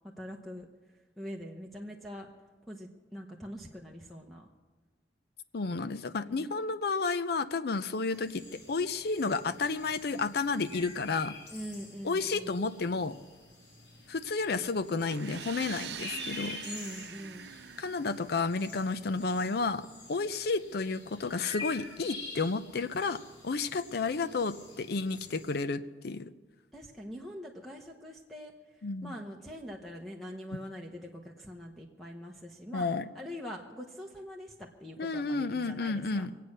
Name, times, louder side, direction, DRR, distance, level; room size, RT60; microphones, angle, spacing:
voice 1, 0.2-0.7 1.2-2.3 2.7-4.5 6.2-6.5 11.5-12.6 16.6-17.5 26.7-28.5 29.0-32.9 33.1-36.3, equal, ahead, -1 dB, 0.9 m, -43 dB
voice 2, 5.5-11.4 12.0-13.1 14.1-16.6 17.8-26.3 28.8-29.2 32.7-33.1 35.0-36.3, left 4 dB, 60° left, 13 dB, 0.5 m, -31 dB
sound 1, 8.1-25.6, left 3 dB, 85° left, 2.9 m, -47 dB
sound 2, 15.1-18.9, right 8 dB, 65° right, 0.5 m, -44 dB
24.0 x 8.4 x 6.5 m, 1.3 s
head